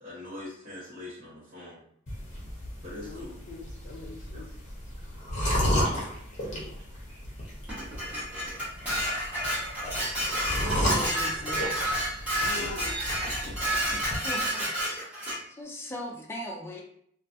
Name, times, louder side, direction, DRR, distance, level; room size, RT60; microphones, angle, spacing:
voice 1, 0.0-1.8 2.8-3.4 4.3-4.4 5.7-6.1 12.4-12.7 13.2-14.0, left 1 dB, 40° right, -12 dB, 1.1 m, -43 dB
sound 1, 2.1-14.2, equal, 40° left, 0.8 m, -33 dB
voice 2, 3.0-4.5 12.4-13.0, left 2 dB, 80° left, 1 dB, 0.4 m, -42 dB
Dishes pots and pans, 7.7-15.4, equal, 10° right, 1.1 m, -30 dB
voice 3, 10.6-11.9 14.2-14.7 15.5-16.8, left 1 dB, 15° left, 0 dB, 0.4 m, -39 dB
2.4 x 2.3 x 2.5 m, 0.67 s
head